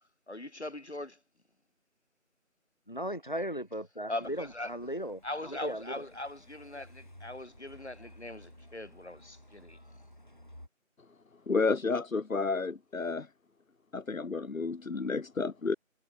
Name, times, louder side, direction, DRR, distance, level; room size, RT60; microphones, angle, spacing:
voice 1, 0.3-1.2 4.1-4.7 5.2-9.8, left 1 dB, 55° left, 1.2 m, -40 dB
voice 2, 2.9-6.0, equal, 35° left, 1.7 m, -37 dB
Truck, 4.2-10.7, left 1 dB, 35° right, 1.5 m, -55 dB
voice 3, 11.5-13.3 13.9-15.7, left 4 dB, 75° left, 1.0 m, -31 dB
figure-of-eight pair, 180°, 41 cm